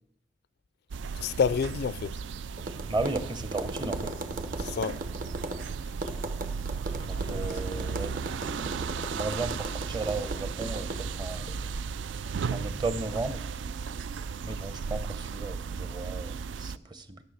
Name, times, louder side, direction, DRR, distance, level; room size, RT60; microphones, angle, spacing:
sound 1, 0.9-16.8, right 5 dB, 80° right, 0.4 m, -35 dB
voice 1, 1.1-2.2 4.6-5.0 7.1-7.9, left 6 dB, 60° left, 0.3 m, -30 dB
Tap, 2.6-11.9, right 2 dB, 50° right, 1.1 m, -38 dB
voice 2, 2.9-4.1 7.1-8.1 9.1-11.5 12.5-13.4 14.4-17.2, right 3 dB, 25° right, 0.8 m, -34 dB
12.5 x 7.0 x 6.6 m
head